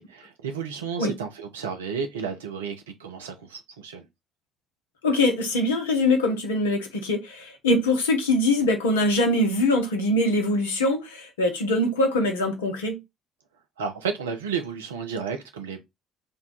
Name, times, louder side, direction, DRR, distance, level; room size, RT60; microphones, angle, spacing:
voice 1, 0.0-4.1 13.8-15.8, right 6 dB, 80° right, 0.5 m, -32 dB
voice 2, 5.0-13.0, left 1 dB, 80° left, 0.7 m, -23 dB
2.6 x 2.2 x 4.0 m
figure-of-eight pair, 50°, 0 cm